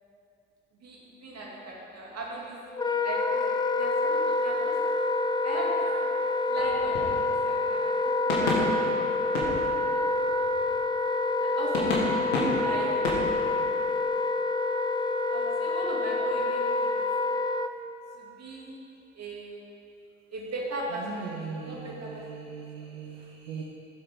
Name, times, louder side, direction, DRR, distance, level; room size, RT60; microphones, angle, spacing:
voice 1, 0.8-2.6 3.0-3.4 3.8-4.7 5.4-5.9 6.5-7.2 7.4-8.9 9.3-9.7 9.9-10.0 11.4-12.0 12.6-13.1 15.3-17.0 18.2-18.8 19.1-19.6 20.3-22.4 22.7-22.9, right 2 dB, 45° right, -3 dB, 2.7 m, -38 dB
Wind instrument woodwind instrument, 2.7-17.7, left 2 dB, 10° left, 0.5 m, -27 dB
sound 1, 6.5-8.0 8.3-10.9 11.3-11.4 11.7-14.1, left 2 dB, 80° left, 1.8 m, -32 dB
voice 2, 21.0-23.6, right 5 dB, 80° right, -3 dB, 1.0 m, -39 dB
15.5 x 7.7 x 3.8 m, 2.7 s
hypercardioid pair, 50°, 37 cm